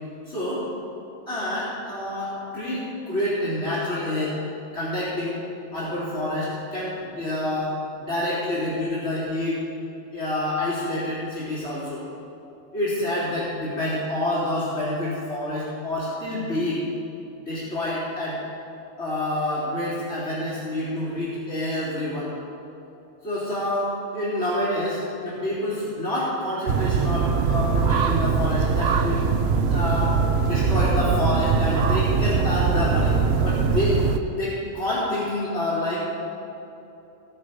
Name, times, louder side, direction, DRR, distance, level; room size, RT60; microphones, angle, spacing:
voice 1, 0.3-0.6 1.3-4.4 4.7-5.3 5.7-9.6 10.1-12.0 12.7-16.8 17.4-18.4 19.0-22.3 23.2-29.2 29.7-33.2 33.4-34.1 34.3-36.0, left 1 dB, 60° left, -12 dB, 3.8 m, -27 dB
sound 1, 26.7-34.2, right 5 dB, 60° right, 0.9 m, -22 dB
19.5 x 6.8 x 5.4 m, 2.9 s
omnidirectional pair, 1.3 m